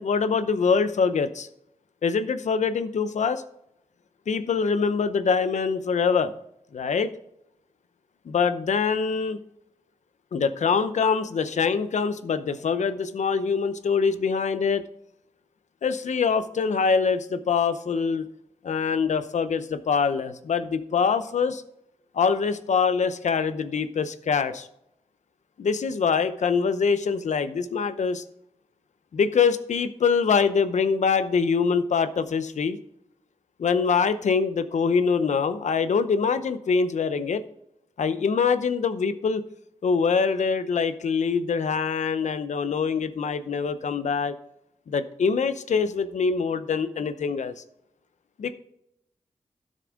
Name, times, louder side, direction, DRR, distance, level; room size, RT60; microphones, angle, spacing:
voice 1, 0.0-1.5 2.0-3.4 4.3-6.3 6.7-7.1 8.3-9.4 10.3-14.8 15.8-18.3 18.6-21.6 22.1-24.7 25.6-28.2 29.1-32.8 33.6-37.4 38.0-39.4 39.8-44.3 44.9-47.5 48.4-48.5, left 5 dB, 85° left, 11 dB, 0.8 m, -24 dB
12.0 x 6.5 x 3.8 m, 0.77 s
cardioid pair, 70°, 12 cm